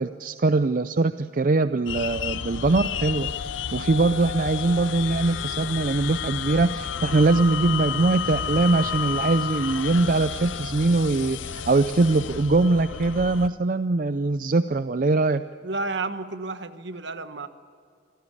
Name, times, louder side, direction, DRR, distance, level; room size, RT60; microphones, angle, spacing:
voice 1, 0.0-3.3 3.7-15.4, right 3 dB, 45° right, 12 dB, 0.5 m, -22 dB
sound 1, 1.9-13.5, left 7 dB, 75° left, 0.6 m, -31 dB
sound 2, 5.5-11.5, right 1 dB, ahead, 3.2 m, -46 dB
voice 2, 15.6-17.5, right 3 dB, 65° right, 10 dB, 1.2 m, -31 dB
25.5 x 17.0 x 8.5 m, 2.4 s
head